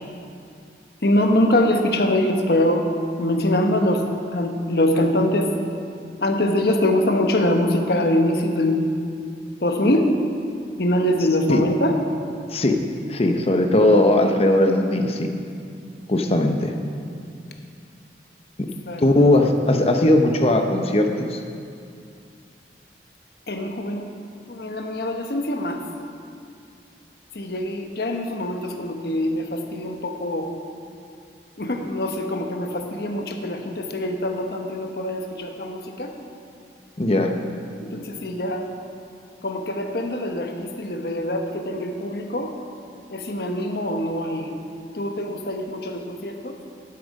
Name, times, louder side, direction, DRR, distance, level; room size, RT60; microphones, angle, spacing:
voice 1, 1.0-2.9 3.2-4.0 4.3-5.5 6.2-8.9 9.6-10.1 10.8-12.0 18.8-19.3 23.5-24.1 24.5-25.8 27.3-30.5 31.6-36.1 37.8-38.7 39.4-42.5 43.1-44.5 44.9-46.6, left 1 dB, 60° left, 4 dB, 1.1 m, -23 dB
voice 2, 12.5-12.8 13.1-15.3 16.1-16.7 18.6-18.7 19.0-21.4 37.0-37.3, left 1 dB, 35° left, 4 dB, 0.7 m, -18 dB
11.5 x 8.8 x 5.4 m, 2.4 s
head